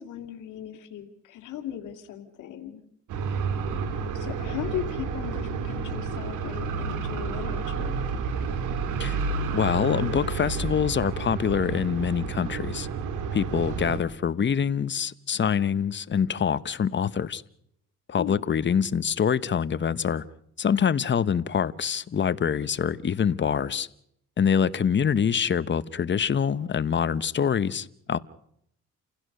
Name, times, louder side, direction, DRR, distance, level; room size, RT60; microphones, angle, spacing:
voice 1, 0.0-2.8 4.1-8.0 18.2-18.4, left 10 dB, 85° left, 2.6 m, -37 dB
sound 1, 3.1-14.0, right 5 dB, 90° right, 2.5 m, -30 dB
voice 2, 9.5-12.9 13.3-17.4 18.1-20.2 20.6-23.9 24.4-28.2, left 7 dB, 40° left, 1.0 m, -25 dB
29.0 x 16.0 x 6.6 m
cardioid pair, 90°, 30 cm